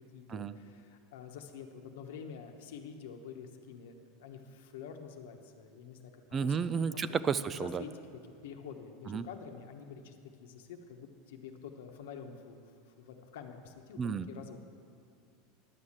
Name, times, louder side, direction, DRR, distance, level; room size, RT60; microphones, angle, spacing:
voice 1, 0.0-7.2 7.5-8.0 8.4-14.6, left 6 dB, 80° left, 5 dB, 1.0 m, -48 dB
voice 2, 6.3-7.8 9.1-9.3 14.0-14.3, right 6 dB, 25° right, 14 dB, 0.4 m, -32 dB
11.0 x 6.4 x 7.3 m, 2.5 s
supercardioid pair, 125°, 0 cm